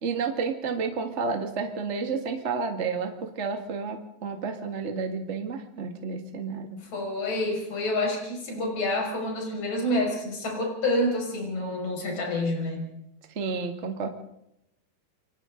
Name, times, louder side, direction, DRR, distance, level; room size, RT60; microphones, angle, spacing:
voice 1, 0.0-6.8 13.3-14.1, right 5 dB, 35° right, 4 dB, 1.1 m, -31 dB
voice 2, 6.9-12.9, left 1 dB, 45° left, 0 dB, 7.2 m, -28 dB
29.5 x 24.0 x 3.9 m, 0.82 s
omnidirectional pair, 4.6 m